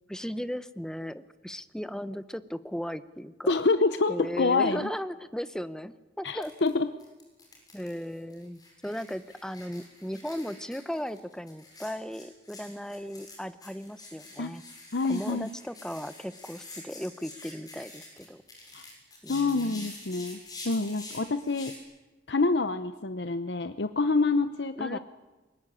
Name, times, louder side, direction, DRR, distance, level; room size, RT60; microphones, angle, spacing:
voice 1, 0.1-3.5 4.1-6.5 7.7-14.6 15.1-18.4 19.2-19.9 24.8-25.0, equal, 5° left, 13 dB, 0.8 m, -36 dB
voice 2, 3.5-4.9 6.2-6.9 14.4-14.5 14.9-15.5 18.7-18.8 19.3-20.4 20.6-21.7 22.3-25.0, left 3 dB, 70° left, 10 dB, 0.8 m, -27 dB
sound 1, 6.4-6.7 7.0-21.8, left 2 dB, 20° left, 7.5 m, -47 dB
23.5 x 20.5 x 10.0 m, 1.2 s
head